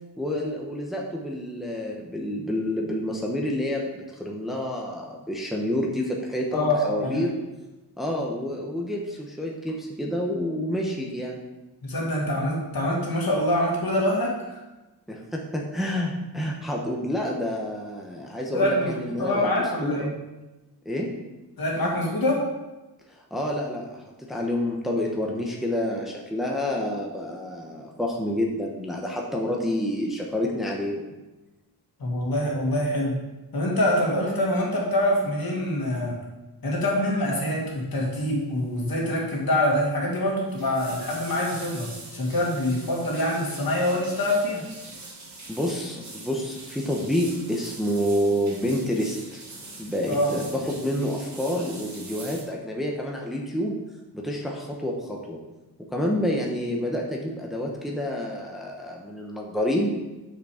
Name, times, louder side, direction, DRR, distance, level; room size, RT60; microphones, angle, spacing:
voice 1, 0.2-7.3 8.0-11.4 15.1-19.5 19.8-20.0 20.8-21.1 23.3-24.0 24.3-31.0 45.5-49.4 49.8-53.7 54.1-55.4 55.9-60.0, left 1 dB, ahead, -1 dB, 1.0 m, -28 dB
voice 2, 6.5-7.2 11.8-14.6 18.5-20.1 21.6-22.5 32.0-33.2 33.5-36.2 36.6-44.6 50.1-50.3, left 1 dB, 60° left, -3 dB, 2.3 m, -25 dB
sound 1, 38.1-38.4 38.6-39.0 39.2-39.3 40.3-52.4, right 2 dB, 45° right, 1.7 m, -43 dB
6.7 x 6.1 x 4.9 m, 1.1 s
wide cardioid pair, 120°, 40 cm